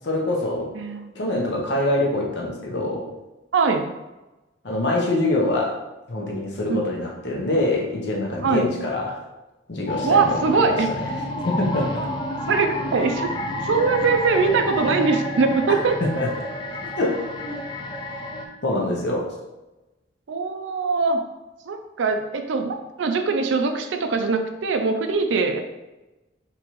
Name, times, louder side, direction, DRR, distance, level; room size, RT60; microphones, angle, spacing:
voice 1, 0.0-0.7 1.1-3.1 4.6-5.8 6.1-9.2 9.7-11.0 11.4-11.9 16.0-16.3 17.0-17.6 18.6-19.3, left 2 dB, 65° left, -1 dB, 0.8 m, -24 dB
voice 2, 0.8-1.1 3.5-3.9 6.7-6.8 8.4-8.7 10.0-10.9 12.5-13.3 13.6-16.0 20.3-21.2 21.7-25.6, right 4 dB, 80° right, 6 dB, 0.4 m, -22 dB
sound 1, 9.9-18.5, left 1 dB, 25° left, 0.4 m, -30 dB
3.6 x 2.9 x 3.0 m, 1.1 s
head